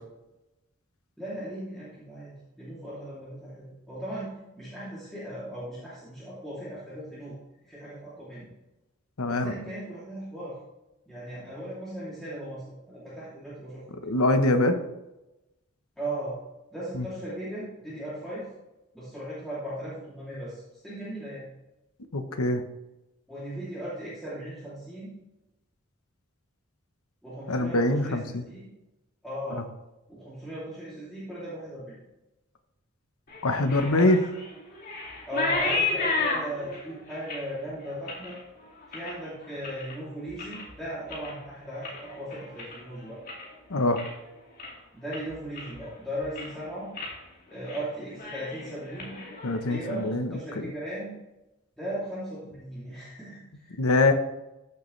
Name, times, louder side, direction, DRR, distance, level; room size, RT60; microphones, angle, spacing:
voice 1, 1.2-8.5 9.2-10.6 11.1-13.8 16.0-16.3 16.7-18.5 18.9-21.4 23.3-25.1 27.2-28.7 29.2-29.6 30.1-32.0 33.9-34.2 35.3-38.3 38.9-43.2 44.9-46.9 47.5-49.3 49.7-51.2 51.8-53.7, right 1 dB, ahead, -11 dB, 2.8 m, -37 dB
voice 2, 9.2-9.5 14.0-14.8 16.9-17.1 22.1-22.6 27.5-28.4 33.4-34.2 43.7-44.0 49.4-50.7 53.8-54.1, left 2 dB, 90° left, 7 dB, 1.0 m, -24 dB
sound 1, 33.3-39.9 40.3-40.8 41.0-43.5 43.8-44.3 44.6-44.7 45.1-45.9 46.2-46.6 46.9-47.2 47.5-47.8 48.1-50.0, left 3 dB, 40° left, 2.4 m, -33 dB
14.0 x 6.7 x 3.3 m, 0.97 s
head